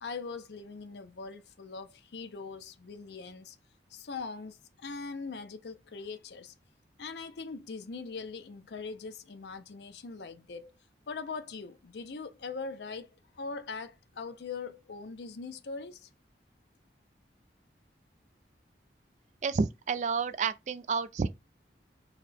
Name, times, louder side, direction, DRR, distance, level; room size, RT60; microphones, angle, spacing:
voice 1, 0.0-3.6 3.9-6.5 7.0-10.7 11.1-16.1, left 4 dB, 75° left, 0.5 m, -41 dB
voice 2, 19.4-21.3, right 5 dB, 40° right, 0.3 m, -30 dB
4.1 x 2.2 x 4.0 m
head